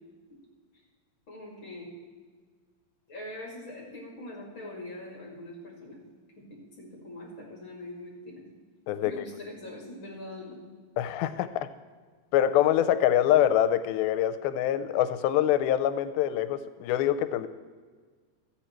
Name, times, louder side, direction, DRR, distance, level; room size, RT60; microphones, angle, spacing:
voice 1, 1.3-1.9 3.1-6.0 6.4-8.3 9.0-10.6, left 1 dB, 40° left, -3 dB, 2.5 m, -42 dB
voice 2, 11.0-11.7 12.3-17.5, left 11 dB, 85° left, 11 dB, 2.4 m, -25 dB
13.5 x 9.0 x 4.4 m, 1.5 s
omnidirectional pair, 4.3 m